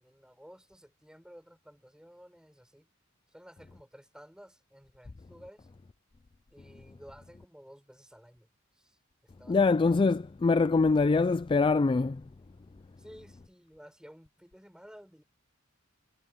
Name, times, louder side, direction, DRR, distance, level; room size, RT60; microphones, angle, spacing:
voice 1, 0.0-2.9 3.3-5.7 6.5-9.0 9.4-10.2 13.0-15.2, equal, 5° right, 6.9 m, -54 dB
voice 2, 9.5-12.2, left 4 dB, 25° left, 0.3 m, -24 dB
head